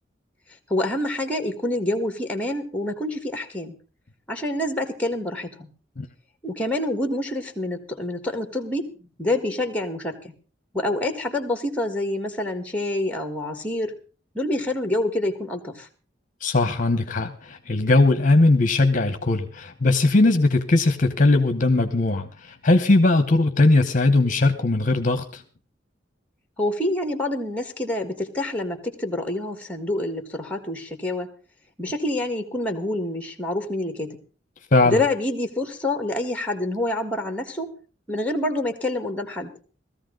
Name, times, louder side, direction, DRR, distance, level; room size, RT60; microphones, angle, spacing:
voice 1, 0.7-3.7 4.3-5.7 6.4-10.3 10.7-13.9 14.3-15.9 26.6-31.3 31.8-34.2 34.8-37.7 38.1-39.5, left 1 dB, 5° left, 7 dB, 1.7 m, -27 dB
voice 2, 16.4-25.4 34.7-35.0, left 2 dB, 45° left, 9 dB, 1.0 m, -19 dB
17.5 x 14.0 x 3.9 m, 0.37 s
head